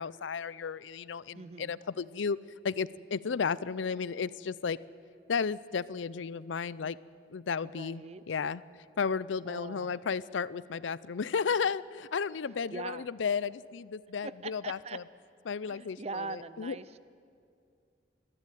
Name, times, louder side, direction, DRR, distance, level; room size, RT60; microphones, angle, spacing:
voice 1, 0.0-2.4 2.6-4.8 5.3-7.0 7.3-8.6 9.0-15.0 15.5-16.8, left 6 dB, 85° left, 19 dB, 0.5 m, -33 dB
voice 2, 1.3-1.8 7.6-8.2 9.4-10.0 12.7-13.1 14.2-15.0 15.7-17.0, right 4 dB, 35° right, 15 dB, 0.6 m, -42 dB
20.0 x 14.0 x 9.2 m, 2.3 s
head